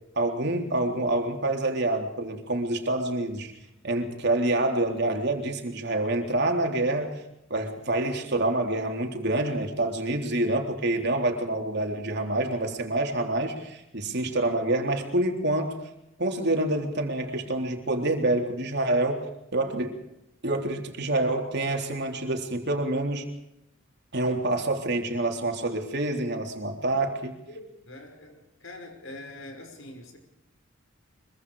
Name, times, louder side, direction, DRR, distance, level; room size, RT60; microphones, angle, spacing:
voice 1, 0.1-3.5 3.8-7.2 7.5-15.8 16.2-19.2 19.5-20.0 20.4-23.3 24.1-27.3, right 2 dB, 55° right, 3 dB, 3.7 m, -27 dB
voice 2, 27.5-30.2, left 1 dB, 75° left, 5 dB, 5.6 m, -44 dB
25.0 x 23.5 x 5.0 m, 0.86 s
head